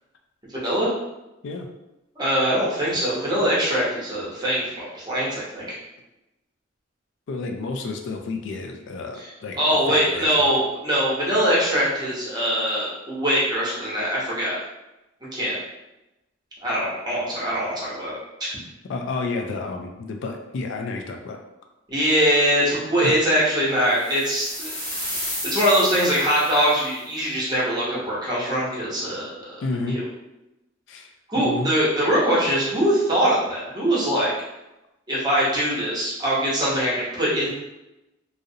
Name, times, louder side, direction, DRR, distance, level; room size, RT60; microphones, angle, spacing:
voice 1, 0.5-0.9 2.2-5.8 9.6-14.6 15.3-15.6 16.6-18.5 21.9-25.1 25.4-29.5 29.9-30.0 31.3-34.3 35.1-37.5, equal, 20° right, -7 dB, 0.8 m, -22 dB
voice 2, 7.3-10.5 18.9-21.4 23.0-23.2 29.6-30.0 30.9-31.7, left 3 dB, 65° left, 4 dB, 0.3 m, -31 dB
sound 1, 24.0-27.0, equal, 10° left, 0.9 m, -32 dB
2.4 x 2.0 x 2.7 m, 0.96 s
head